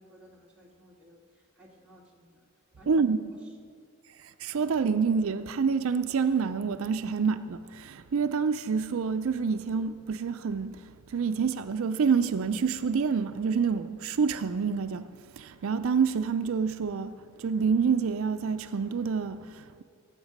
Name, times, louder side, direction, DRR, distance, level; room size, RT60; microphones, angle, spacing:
voice 1, 0.0-2.4 2.7-3.1, equal, 5° right, 1.9 m, -56 dB
voice 2, 2.9-3.2 4.4-10.8 11.1-15.1 15.4-19.8, right 5 dB, 80° right, 0.4 m, -27 dB
16.5 x 8.0 x 5.3 m
head